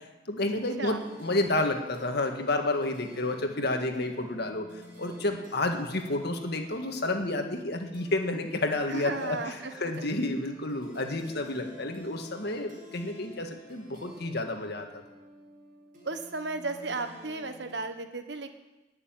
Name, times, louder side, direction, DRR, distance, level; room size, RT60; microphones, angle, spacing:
voice 1, 0.3-4.7 5.0-14.9, left 2 dB, 60° left, 4 dB, 1.8 m, -30 dB
sound 1, 1.0-17.8, left 1 dB, 45° right, 4.3 m, -51 dB
voice 2, 8.9-10.1 16.0-18.5, right 3 dB, 60° right, 8 dB, 1.3 m, -35 dB
18.5 x 6.9 x 9.0 m, 1.1 s
head